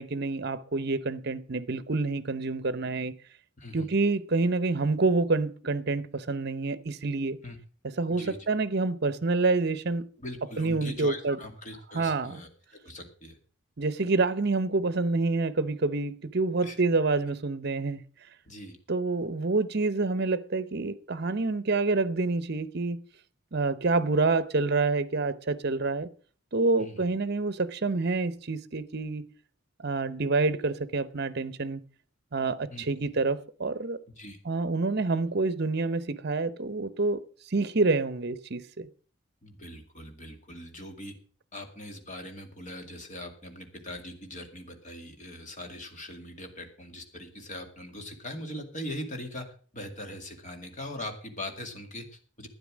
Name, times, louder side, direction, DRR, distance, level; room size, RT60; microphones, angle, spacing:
voice 1, 0.0-3.1 3.7-7.4 8.0-10.1 10.6-11.4 11.9-12.4 13.8-18.0 18.9-23.0 23.5-26.1 26.5-29.2 29.8-31.8 32.3-34.0 34.4-37.2 37.5-38.9, right 3 dB, 55° right, 0.8 m, -27 dB
voice 2, 3.6-3.9 7.4-7.6 8.1-8.4 10.2-13.4 16.6-16.8 18.5-18.8 26.8-27.1 32.7-32.8 34.2-34.4 39.4-41.2 41.5-52.5, left 1 dB, 40° left, 2.2 m, -41 dB
12.0 x 9.6 x 6.2 m
head